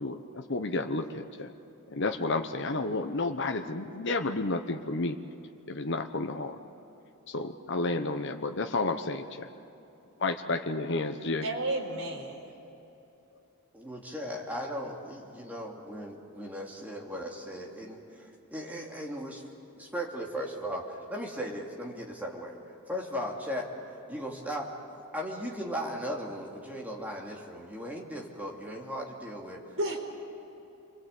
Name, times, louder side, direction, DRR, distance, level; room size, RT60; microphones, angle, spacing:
voice 1, 0.0-1.5 1.9-5.2 5.7-6.6 7.3-9.5 10.2-11.5, left 3 dB, 55° left, 5 dB, 1.0 m, -31 dB
voice 2, 11.4-12.4 29.7-30.0, right 1 dB, 65° right, 1 dB, 4.3 m, -32 dB
voice 3, 13.7-19.4 19.8-22.6 22.9-23.7 24.1-24.7 25.1-29.6, equal, 5° right, -2 dB, 2.8 m, -37 dB
28.5 x 23.0 x 8.4 m, 2.9 s
head